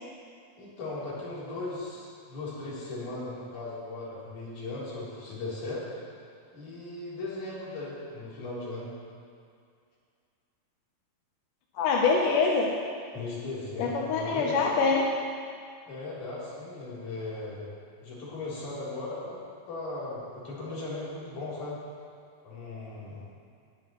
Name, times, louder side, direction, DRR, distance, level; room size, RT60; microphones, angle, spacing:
voice 1, 0.6-5.9 6.5-8.9 13.1-14.7 15.9-17.6 18.0-19.4 19.7-21.8 22.4-23.2, left 2 dB, 50° left, -9 dB, 4.9 m, -37 dB
voice 2, 11.8-12.7 13.8-15.0, left 4 dB, 70° left, -2 dB, 2.2 m, -24 dB
19.5 x 11.5 x 3.1 m, 2.3 s
omnidirectional pair, 4.3 m